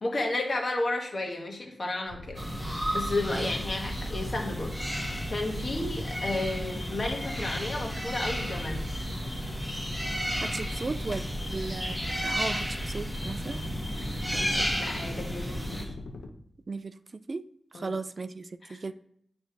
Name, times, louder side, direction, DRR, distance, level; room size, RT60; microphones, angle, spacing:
voice 1, 0.0-2.4 2.9-8.9 14.6-15.9 17.7-18.0 18.7-18.8, left 2 dB, 45° left, 1 dB, 1.5 m, -33 dB
sound 1, 2.1-16.3, left 2 dB, 90° left, 0.8 m, -41 dB
sound 2, 2.3-15.8, equal, ahead, 1.6 m, -33 dB
voice 2, 10.3-11.2 11.5-13.6 14.3-14.7 16.7-16.9 17.3-17.5 17.7-18.9, right 3 dB, 45° right, 12 dB, 0.3 m, -36 dB
9.0 x 3.3 x 4.5 m, 0.68 s
wide cardioid pair, 90°, 0 cm